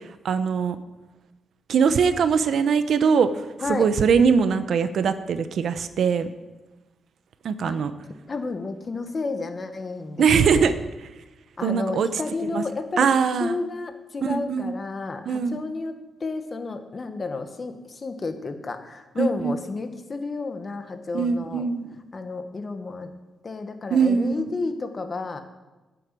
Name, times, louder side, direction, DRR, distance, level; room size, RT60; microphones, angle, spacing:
voice 1, 0.2-0.8 1.7-3.3 3.7-6.3 7.4-7.9 10.2-10.7 11.6-12.1 12.5-12.6 13.0-13.6 14.2-14.7 15.3-15.6 19.2-19.6 21.1-22.0 23.9-24.5, right 6 dB, 60° right, 12 dB, 0.8 m, -21 dB
voice 2, 8.3-10.8 11.6-21.7 22.1-23.1 23.4-25.4, left 3 dB, 30° left, 8 dB, 1.3 m, -31 dB
11.0 x 7.8 x 9.1 m, 1.1 s
cardioid pair, 135°, 0 cm